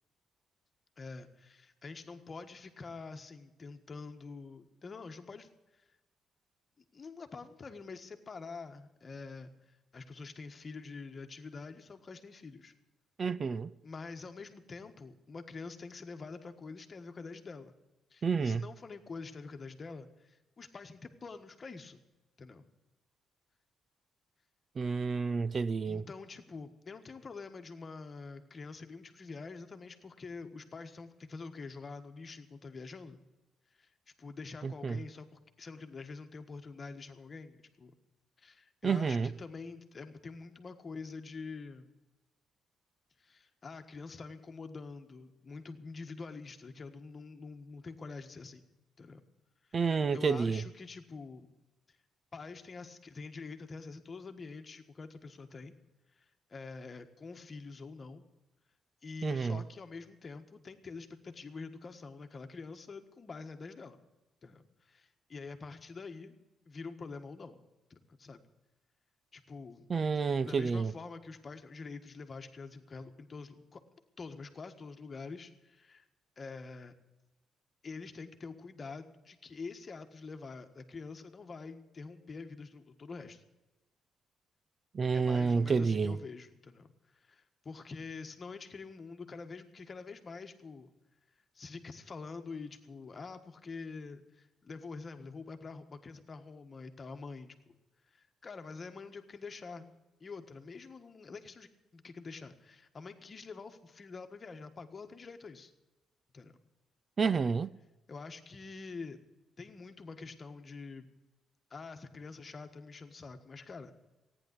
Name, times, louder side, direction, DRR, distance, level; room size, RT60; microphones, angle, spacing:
voice 1, 1.0-5.8 6.9-12.7 13.8-17.7 18.1-22.0 22.4-22.7 25.8-33.2 33.8-33.9 34.2-37.9 38.4-41.9 43.2-48.7 49.0-49.2 49.7-51.5 51.9-52.0 52.3-55.7 56.2-58.2 59.0-64.0 64.4-66.3 66.7-67.6 67.9-68.4 69.3-69.9 70.1-73.8 74.2-76.0 76.4-76.9 77.8-83.4 85.1-90.9 91.5-97.7 98.1-99.9 100.2-105.7 106.3-106.5 108.1-109.2 109.6-111.1 111.7-113.9, left 4 dB, 35° left, 1.5 m, -46 dB
voice 2, 13.2-13.7 18.2-18.6 24.8-26.0 34.6-35.0 38.8-39.3 49.7-50.6 59.2-59.6 69.9-70.9 84.9-86.2 107.2-107.7, right 5 dB, 40° right, 0.5 m, -29 dB
14.5 x 10.0 x 8.3 m
cardioid pair, 90°, 0 cm